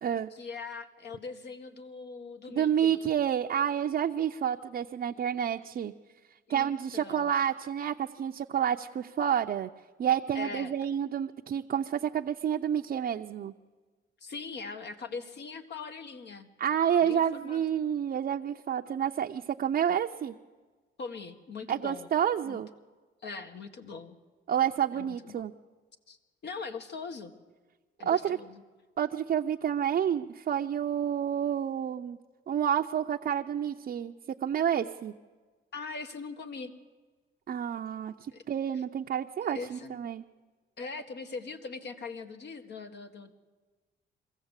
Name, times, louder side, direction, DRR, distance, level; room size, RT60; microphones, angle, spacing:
voice 1, 0.3-3.0 6.5-7.3 10.3-10.7 14.2-16.5 17.0-17.6 21.0-22.1 22.5-22.6 23.2-24.2 24.9-25.5 26.1-26.2 26.4-27.3 28.0-28.6 35.7-36.7 38.3-38.4 38.7-38.8 39.4-40.0 40.8-43.3, left 4 dB, 60° left, 6 dB, 1.7 m, -41 dB
voice 2, 2.5-5.9 6.5-9.7 10.0-13.5 16.6-20.3 21.7-22.7 24.5-25.5 28.0-28.4 29.0-32.2 32.5-34.1 34.4-35.1 37.5-38.1 38.5-40.2, right 9 dB, 50° right, 2 dB, 0.6 m, -29 dB
22.5 x 15.0 x 8.2 m, 1.4 s
cardioid pair, 90°, 20 cm